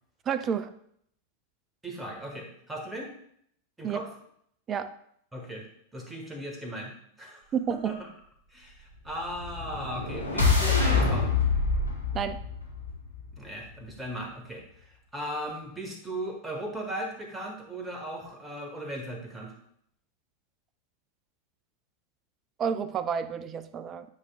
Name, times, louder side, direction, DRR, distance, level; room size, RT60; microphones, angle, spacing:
voice 1, 0.3-0.7 3.8-4.0 4.7-4.9 7.5-7.9 12.1-12.4 22.6-24.1, right 7 dB, 25° right, 13 dB, 0.4 m, -30 dB
voice 2, 1.8-3.1 3.8-4.1 5.3-5.7 5.9-8.1 8.5-11.3 13.4-19.5, right 1 dB, 10° right, 1 dB, 1.6 m, -37 dB
sound 1, 9.2-13.4, left 4 dB, 85° left, 1.3 m, -26 dB
9.5 x 5.1 x 2.4 m, 0.68 s
figure-of-eight pair, 90°, 0 cm